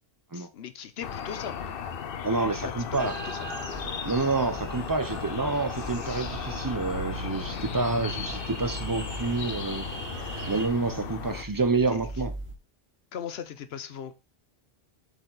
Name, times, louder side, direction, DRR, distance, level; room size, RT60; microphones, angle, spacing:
voice 1, 0.3-1.7 2.6-3.4 10.5-10.7 11.9-12.0 13.1-14.2, left 8 dB, 85° left, 1.0 m, -39 dB
sound 1, 1.0-11.4, left 7 dB, 65° left, 0.8 m, -36 dB
voice 2, 2.2-3.1 4.0-9.9 10.5-12.3, right 3 dB, 25° right, 0.6 m, -28 dB
sound 2, 3.0-10.7, right 2 dB, 60° right, 2.2 m, -42 dB
sound 3, 3.7-12.5, right 2 dB, 75° right, 2.2 m, -41 dB
7.9 x 4.6 x 3.9 m
omnidirectional pair, 1.0 m